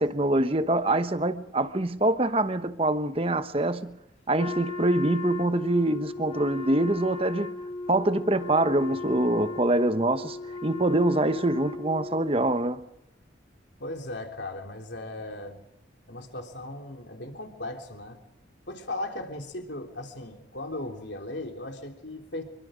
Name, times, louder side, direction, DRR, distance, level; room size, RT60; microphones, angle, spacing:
voice 1, 0.0-4.0 4.3-7.6 7.9-12.9, right 1 dB, 30° right, 1.0 m, -25 dB
Wind instrument woodwind instrument, 4.4-12.3, left 3 dB, 30° left, 1.8 m, -37 dB
voice 2, 13.8-15.6 16.1-18.2 18.7-22.4, left 2 dB, 65° left, 3.4 m, -37 dB
26.5 x 23.5 x 5.1 m
head